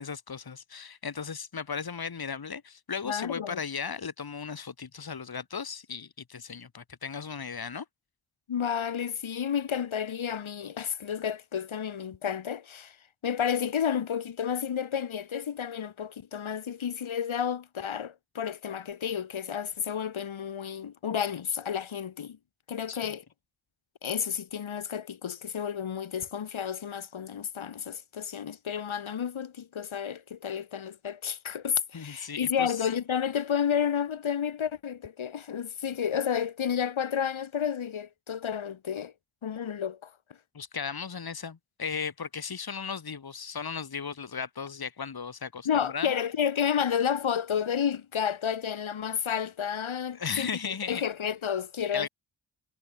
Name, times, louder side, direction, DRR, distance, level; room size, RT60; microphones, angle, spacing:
voice 1, 0.0-7.9 22.9-23.2 31.9-32.8 40.5-46.1 50.1-51.0 51.9-52.1, left 6 dB, 50° left, 2.4 m, -36 dB
voice 2, 3.1-3.6 8.5-13.0 13.2-22.4 22.7-23.2 24.0-39.1 39.4-40.1 45.7-52.1, left 8 dB, 90° left, 3.6 m, -31 dB
cardioid pair, 65°, 47 cm